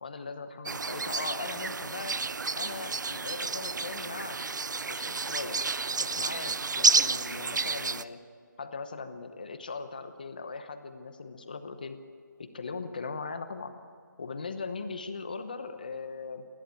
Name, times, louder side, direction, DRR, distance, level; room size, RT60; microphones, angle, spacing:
voice 1, 0.0-2.2 2.6-4.4 4.9-5.6 6.0-8.2 8.6-12.0 12.4-13.7 14.2-16.5, left 4 dB, 25° left, 9 dB, 0.9 m, -39 dB
sound 1, 0.7-8.0, right 4 dB, 65° right, 0.6 m, -30 dB
28.0 x 11.5 x 9.1 m, 2.2 s
hypercardioid pair, 180°, 11 cm